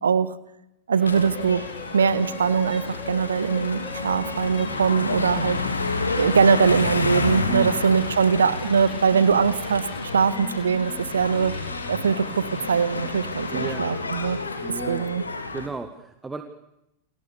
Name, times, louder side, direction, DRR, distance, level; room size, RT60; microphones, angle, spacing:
sound 1, 0.9-14.5, left 5 dB, 20° left, 2.3 m, -42 dB
voice 1, 0.9-1.6 1.9-5.6 6.2-11.5 11.9-14.4 14.9-15.2, right 6 dB, 70° right, 15 dB, 1.6 m, -22 dB
sound 2, 1.1-15.7, left 3 dB, 80° left, 3.3 m, -30 dB
voice 2, 7.5-7.8 13.5-13.9 14.6-15.1 15.5-16.4, right 3 dB, 10° right, 7 dB, 1.8 m, -33 dB
29.5 x 25.0 x 6.9 m, 0.86 s
figure-of-eight pair, 90°, 0 cm